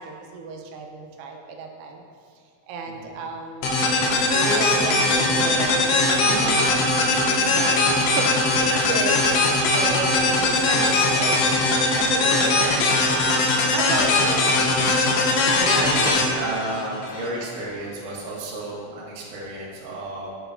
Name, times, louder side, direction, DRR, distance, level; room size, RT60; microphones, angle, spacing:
voice 1, 0.0-2.0 2.7-3.7 4.3-6.8 7.4-9.4 9.7-11.4 12.0-13.1 13.5-14.6, right 3 dB, 85° right, 2 dB, 3.3 m, -32 dB
voice 2, 2.9-3.2 8.6-9.0 12.2-12.8 13.2-13.3 15.6-20.3, right 2 dB, 65° right, -6 dB, 2.1 m, -32 dB
sound 1, 3.6-17.3, left 2 dB, 80° left, 2.6 m, -20 dB
8.7 x 6.9 x 2.5 m, 2.2 s
omnidirectional pair, 5.9 m